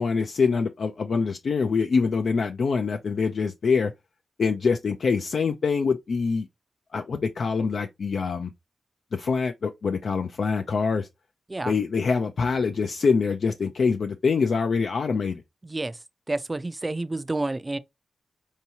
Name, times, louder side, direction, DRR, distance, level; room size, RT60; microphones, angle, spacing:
voice 1, 0.0-3.9 4.4-6.5 6.9-8.5 9.1-11.1 11.6-15.4, left 5 dB, 65° left, 0.4 m, -25 dB
voice 2, 15.6-16.0 16.3-17.8, right 2 dB, 20° right, 0.4 m, -29 dB
4.6 x 2.7 x 2.8 m
wide cardioid pair, 110°, 0 cm